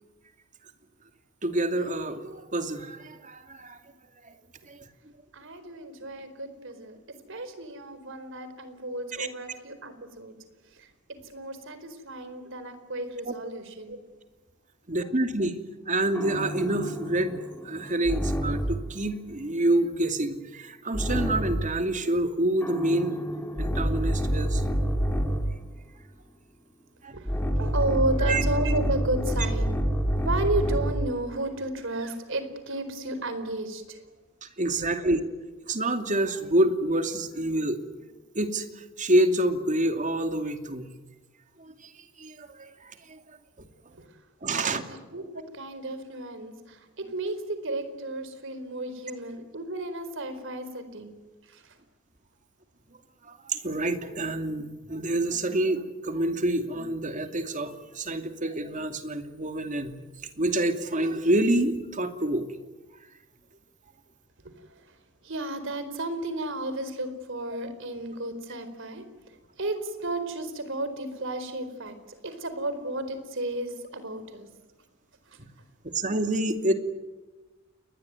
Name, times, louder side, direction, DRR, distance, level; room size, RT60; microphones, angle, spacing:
voice 1, 1.4-3.8 4.7-4.9 9.2-9.3 13.2-13.3 14.9-15.5 15.9-23.2 23.6-24.6 27.0-27.1 28.2-28.4 34.4-35.2 35.7-37.8 38.3-40.9 41.6-41.9 42.2-43.2 44.4-44.8 53.3-60.0 60.4-62.5 75.8-76.7, right 1 dB, 40° right, 7 dB, 2.6 m, -27 dB
voice 2, 5.3-7.0 7.3-10.3 10.7-10.9 11.2-14.0 27.1-29.8 30.2-34.0 43.9-44.0 44.5-51.2 51.4-51.8 64.4-64.8 65.2-69.1 69.6-74.5, right 2 dB, 65° right, 10 dB, 4.5 m, -33 dB
sound 1, 16.2-18.9 20.9-21.8 22.6-25.6 27.3-31.1, equal, 10° left, 3.1 m, -27 dB
29.0 x 21.5 x 9.6 m, 1.2 s
head